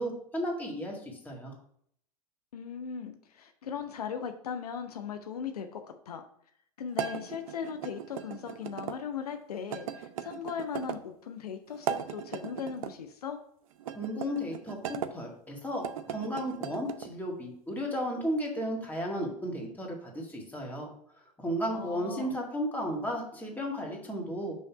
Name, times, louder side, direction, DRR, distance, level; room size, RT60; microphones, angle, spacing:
voice 1, 0.0-1.5 14.0-20.9 21.4-24.6, equal, 10° left, 0 dB, 1.9 m, -34 dB
voice 2, 2.5-6.2 6.8-13.4 21.7-22.4, left 7 dB, 80° left, 7 dB, 0.6 m, -38 dB
sound 1, 6.9-9.0 9.7-11.0 11.7-12.9 13.8-15.1 15.7-17.1, right 9 dB, 65° right, 0.5 m, -38 dB
5.5 x 3.2 x 5.7 m, 0.65 s
hypercardioid pair, 95°, 19 cm